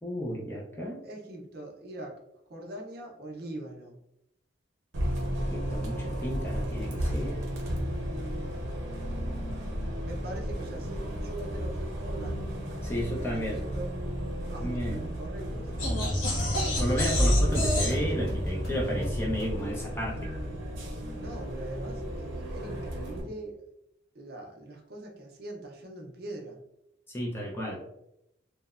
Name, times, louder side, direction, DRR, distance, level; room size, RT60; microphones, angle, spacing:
voice 1, 0.0-1.0 5.5-7.4 12.8-13.6 14.6-15.0 16.8-20.3 27.1-27.8, equal, 10° left, -2 dB, 0.4 m, -33 dB
voice 2, 1.0-2.2 2.5-4.0 7.6-8.6 10.0-12.5 13.1-13.9 14.5-15.7 21.2-23.7 24.1-26.6, right 1 dB, 50° right, 1 dB, 0.5 m, -42 dB
Bus, 4.9-23.2, equal, 90° right, 0.7 m, -34 dB
sound 1, 15.8-20.0, equal, 85° left, 0.6 m, -28 dB
2.8 x 2.0 x 2.3 m, 0.82 s
head